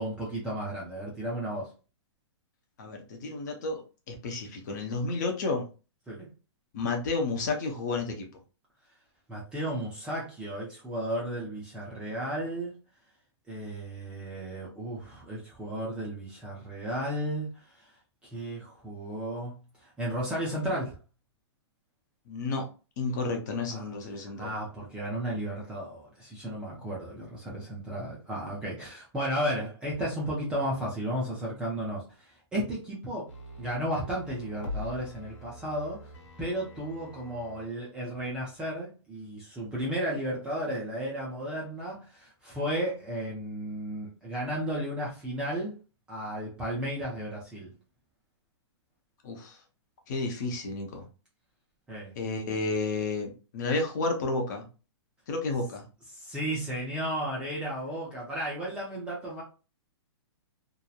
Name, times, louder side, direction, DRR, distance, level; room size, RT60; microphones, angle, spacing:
voice 1, 0.0-1.7 6.1-6.3 9.3-12.7 13.5-17.9 18.2-21.0 23.7-33.3 33.6-36.0 36.4-45.7 46.1-47.7 51.9-52.1 56.1-59.4, right 1 dB, 5° right, -5 dB, 0.4 m, -34 dB
voice 2, 2.8-3.8 4.1-5.7 6.7-8.3 22.3-22.6 23.0-24.5 49.2-49.6 50.1-51.0 52.2-54.7 55.3-55.8, left 3 dB, 40° left, 3 dB, 0.7 m, -31 dB
sound 1, 33.3-37.7 38.1-38.2, left 1 dB, 80° left, 1.2 m, -43 dB
2.8 x 2.0 x 2.3 m, 0.33 s
hypercardioid pair, 165°, 15 cm